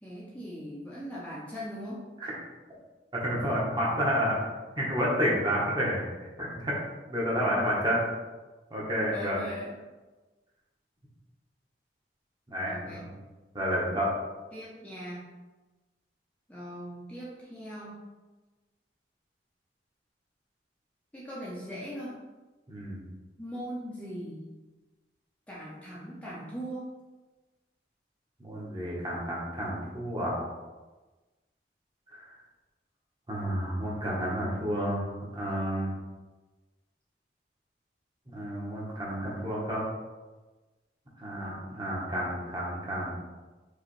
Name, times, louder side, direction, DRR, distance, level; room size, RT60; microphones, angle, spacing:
voice 1, 0.0-2.1 9.1-9.7 12.6-13.1 14.5-15.2 16.5-18.1 21.1-22.2 23.4-24.5 25.5-26.9, equal, 10° left, -8 dB, 0.6 m, -40 dB
voice 2, 3.2-4.4 4.8-6.0 6.4-6.8 7.1-8.1 8.7-9.4 12.5-13.1 13.5-14.2 22.7-23.0 28.4-30.4 32.1-32.2 33.3-35.9 38.3-39.8 41.2-43.1, equal, 25° right, -5 dB, 1.1 m, -30 dB
4.9 x 3.1 x 3.1 m, 1.2 s
head